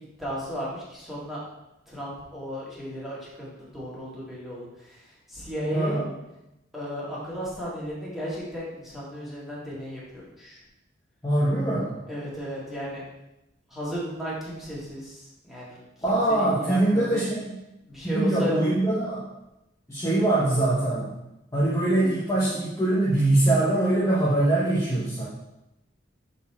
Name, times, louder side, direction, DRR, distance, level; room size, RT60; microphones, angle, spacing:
voice 1, 0.2-1.4 1.9-6.0 6.7-10.6 12.1-13.0 13.7-15.8 16.1-17.3 17.8-18.5, equal, ahead, -8 dB, 2.0 m, -34 dB
voice 2, 5.7-6.1 11.2-12.0 16.0-17.5 18.0-19.2 19.9-21.1 21.5-25.3, right 1 dB, 15° left, -7 dB, 0.9 m, -23 dB
6.6 x 4.2 x 4.2 m, 0.92 s
head